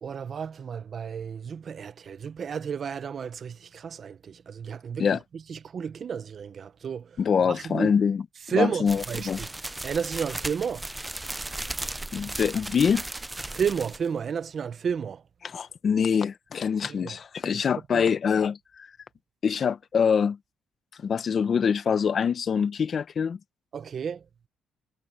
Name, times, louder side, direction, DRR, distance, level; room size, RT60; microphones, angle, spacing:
voice 1, 0.0-7.9 8.5-9.5 9.8-10.9 13.5-15.2 16.9-17.2 17.9-18.0 23.7-24.2, right 7 dB, 45° right, 0.8 m, -32 dB
voice 2, 7.2-8.2 8.6-9.4 12.1-13.1 15.4-18.9 19.4-20.4 21.0-23.4, left 6 dB, 45° left, 1.0 m, -24 dB
sound 1, 8.9-14.1, right 2 dB, 10° right, 0.5 m, -36 dB
cardioid pair, 115°, 0 cm